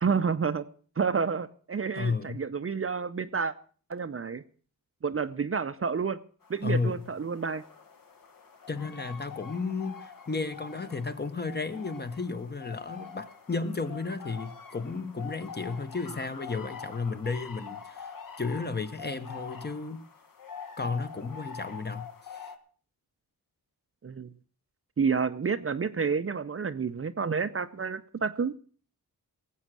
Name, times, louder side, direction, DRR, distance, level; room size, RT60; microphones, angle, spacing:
voice 1, 0.0-0.7 1.0-3.5 3.9-4.4 5.0-6.2 6.5-7.6 24.0-24.3 25.0-28.5, right 5 dB, 35° right, 11 dB, 0.6 m, -29 dB
voice 2, 1.9-2.4 6.6-7.0 8.7-20.0 20.8-22.5, left 4 dB, 25° left, 9 dB, 1.0 m, -33 dB
sound 1, 6.4-22.6, left 6 dB, 60° left, 1.5 m, -45 dB
18.0 x 7.8 x 6.1 m, 0.43 s
wide cardioid pair, 110°, 38 cm